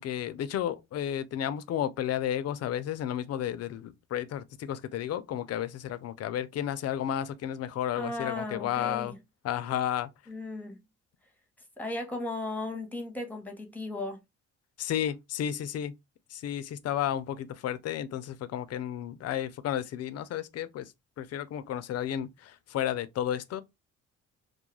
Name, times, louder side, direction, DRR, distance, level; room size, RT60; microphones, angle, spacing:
voice 1, 0.0-9.1 9.4-10.1 14.8-15.9 16.3-23.6, left 10 dB, 55° left, 0.4 m, -32 dB
voice 2, 7.9-9.2 10.3-10.8 11.8-14.2, left 2 dB, 5° left, 0.8 m, -36 dB
2.3 x 2.2 x 3.0 m
cardioid pair, 90°, 30 cm